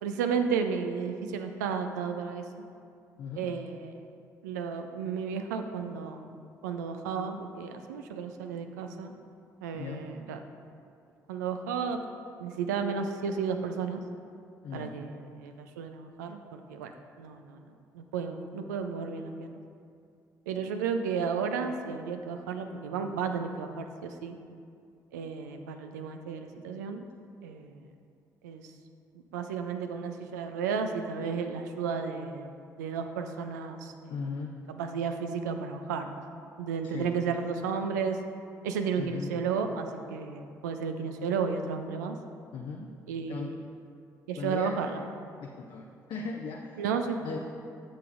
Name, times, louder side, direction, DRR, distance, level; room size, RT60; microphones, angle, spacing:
voice 1, 0.0-2.5 3.4-3.9 4.4-6.4 6.6-9.1 9.6-10.4 11.3-12.1 12.4-14.0 14.7-16.9 17.2-17.6 17.9-19.6 20.5-24.4 25.1-27.1 27.4-27.8 28.4-28.6 29.3-32.5 32.8-34.1 34.7-36.2 36.6-38.2 38.6-42.2 43.1-43.5 44.3-44.9 46.8-47.2, right 6 dB, 90° right, 6 dB, 0.4 m, -33 dB
voice 2, 3.2-3.5 9.7-10.1 14.6-14.9 34.1-34.5 36.8-37.2 38.9-39.3 42.5-42.9 43.3-43.6 44.4-44.8 45.4-46.8 47.2-47.4, left 5 dB, 60° left, 1 dB, 0.6 m, -38 dB
10.0 x 7.0 x 2.5 m, 2.4 s
hypercardioid pair, 50°, 9 cm